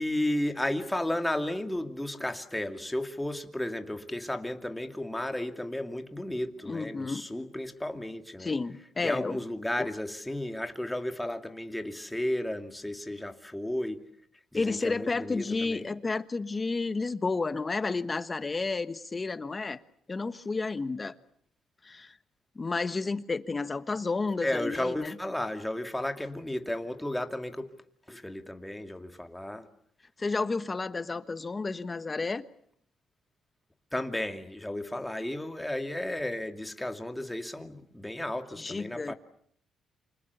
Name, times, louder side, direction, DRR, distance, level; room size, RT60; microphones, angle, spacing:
voice 1, 0.0-8.5 9.0-14.0 14.5-15.9 24.4-27.7 28.1-29.7 33.9-39.1, left 1 dB, 5° left, 2.5 m, -33 dB
voice 2, 6.7-7.3 8.4-9.4 9.8-9.9 14.5-19.8 20.1-21.1 21.8-22.1 22.5-25.1 30.2-32.4 38.6-39.1, left 3 dB, 25° left, 1.3 m, -31 dB
28.0 x 25.5 x 7.0 m
cardioid pair, 90°, 0 cm